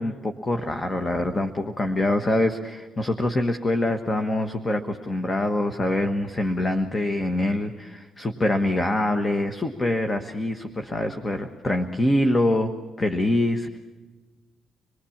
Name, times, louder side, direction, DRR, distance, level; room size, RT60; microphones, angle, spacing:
voice 1, 0.0-12.7 13.0-13.8, left 1 dB, 25° left, 6 dB, 1.4 m, -25 dB
27.5 x 20.0 x 7.3 m, 1.3 s
cardioid pair, 90°, 0 cm